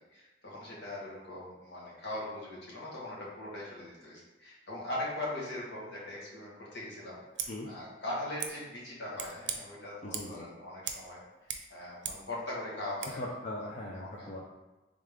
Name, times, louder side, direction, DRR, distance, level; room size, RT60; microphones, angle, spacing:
voice 1, 0.1-11.2 11.7-13.2 13.9-14.3, left 1 dB, 70° left, -6 dB, 1.4 m, -40 dB
Scissors, 7.3-7.5 8.4-8.5 9.1-9.6 10.1-10.4 10.8-11.1 11.3-12.3 13.0-13.1, right 8 dB, 75° right, 0.5 m, -39 dB
voice 2, 10.0-10.5 13.2-14.4, left 1 dB, 40° left, -3 dB, 0.4 m, -40 dB
3.6 x 3.4 x 3.5 m, 1.1 s
head